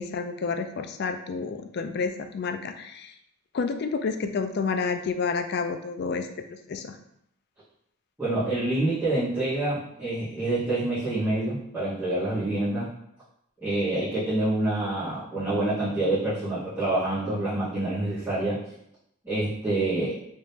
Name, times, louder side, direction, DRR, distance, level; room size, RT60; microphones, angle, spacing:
voice 1, 0.0-3.1 3.5-6.3 6.7-7.0, left 5 dB, 50° left, 7 dB, 0.3 m, -29 dB
voice 2, 8.2-12.9 13.6-18.6 19.2-20.2, right 2 dB, 10° right, -17 dB, 1.2 m, -27 dB
3.5 x 2.9 x 2.8 m, 0.76 s
head